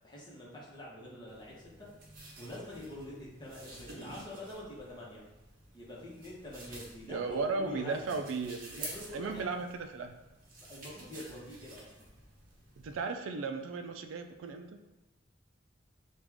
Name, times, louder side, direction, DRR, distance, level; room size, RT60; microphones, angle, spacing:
voice 1, 0.0-1.9 2.4-5.2 5.7-8.2 8.7-9.5 10.7-12.0, left 1 dB, 20° left, -5 dB, 1.0 m, -46 dB
sound 1, 1.3-13.1, right 2 dB, 45° right, 0.9 m, -50 dB
voice 2, 7.1-8.8 9.1-10.1 12.8-14.8, right 4 dB, 80° right, 6 dB, 0.4 m, -36 dB
4.9 x 2.4 x 3.5 m, 1.0 s
head